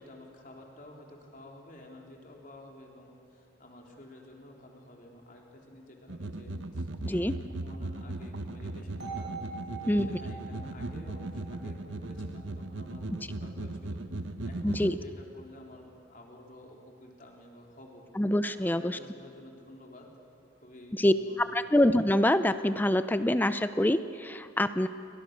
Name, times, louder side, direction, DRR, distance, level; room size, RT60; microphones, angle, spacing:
voice 1, 0.0-9.3 9.7-18.1 18.4-20.1 20.6-21.4, left 1 dB, 45° left, 0 dB, 3.6 m, -51 dB
sound 1, 6.1-14.9, right 2 dB, 90° right, 1.1 m, -37 dB
sound 2, 9.0-13.0, right 4 dB, 60° right, 4.0 m, -45 dB
voice 2, 14.6-14.9 18.2-19.0 20.9-24.9, left 1 dB, 10° left, 12 dB, 0.5 m, -25 dB
29.5 x 23.5 x 6.7 m, 2.6 s
head